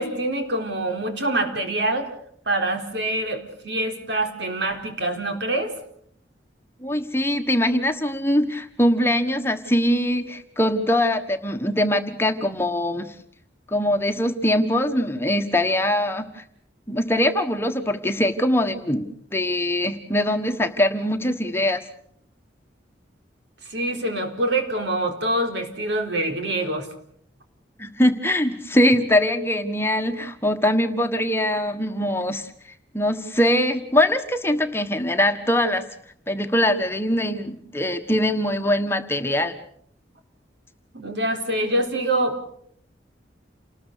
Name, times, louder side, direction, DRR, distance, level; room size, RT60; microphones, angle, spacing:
voice 1, 0.0-2.1 2.5-5.7 23.7-26.9 40.9-42.5, right 1 dB, 75° right, 5 dB, 4.1 m, -25 dB
voice 2, 6.8-13.1 13.7-16.4 16.9-21.8 27.8-32.5 32.9-35.8 36.3-39.5, left 1 dB, 15° left, 6 dB, 1.3 m, -22 dB
29.0 x 20.0 x 6.7 m, 0.66 s
head